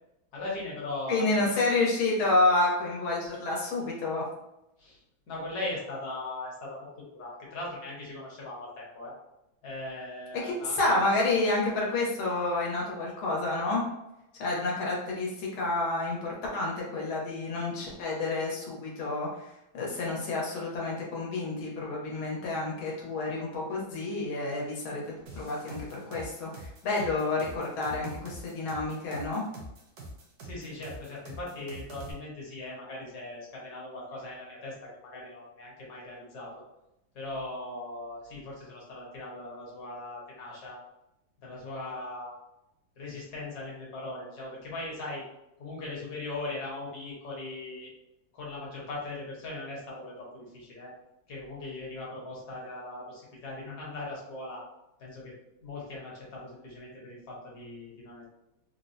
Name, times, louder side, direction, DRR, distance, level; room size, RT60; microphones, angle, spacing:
voice 1, 0.3-1.5 4.8-5.0 5.3-9.1 9.6-10.8 30.4-36.6 37.1-40.8 41.4-42.3 42.9-45.2 45.6-47.9 48.3-50.9 51.3-54.6 55.0-55.3 55.6-58.3, left 2 dB, 60° left, -4 dB, 1.4 m, -39 dB
voice 2, 1.1-4.2 10.3-13.8 14.4-25.0 25.3-29.4, left 2 dB, 85° left, -3 dB, 1.7 m, -29 dB
sound 1, 25.3-32.1, right 1 dB, 65° right, 1.1 m, -44 dB
4.1 x 2.1 x 2.6 m, 0.88 s
omnidirectional pair, 2.2 m